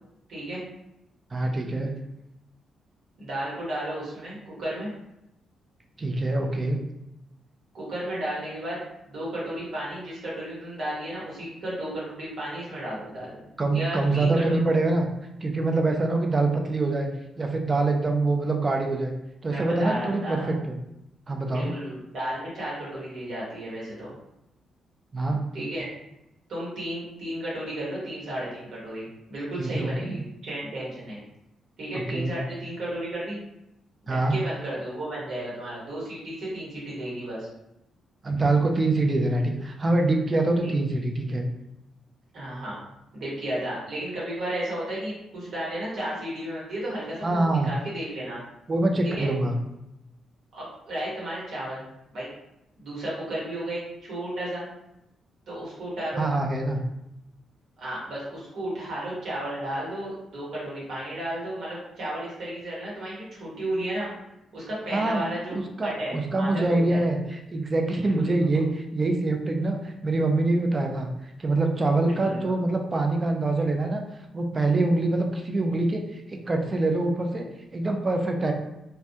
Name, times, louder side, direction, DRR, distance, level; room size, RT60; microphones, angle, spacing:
voice 1, 0.3-0.6 3.2-4.9 7.7-8.8 9.0-13.4 13.7-14.6 19.4-20.5 21.5-24.1 25.5-25.9 26.5-31.2 31.8-33.4 34.1-37.5 40.6-40.8 42.3-42.8 43.1-48.4 49.0-49.3 50.5-51.8 52.1-52.3 52.8-54.7 55.5-56.2 57.8-64.1 64.5-67.0 68.0-68.3 72.0-72.5, right 1 dB, 65° right, -7 dB, 1.0 m, -33 dB
voice 2, 1.3-1.9 6.0-6.8 13.6-15.1 15.4-17.1 17.4-19.1 19.4-20.8 21.3-21.7 25.1-25.4 29.6-30.2 32.1-32.4 34.1-34.4 38.2-41.5 47.2-47.7 48.7-49.5 56.2-56.8 64.9-65.2 65.5-71.1 71.4-74.0 74.3-77.5 77.7-78.5, right 2 dB, 30° right, 3 dB, 0.4 m, -25 dB
2.2 x 2.2 x 2.7 m, 0.85 s
cardioid pair, 105°, 0 cm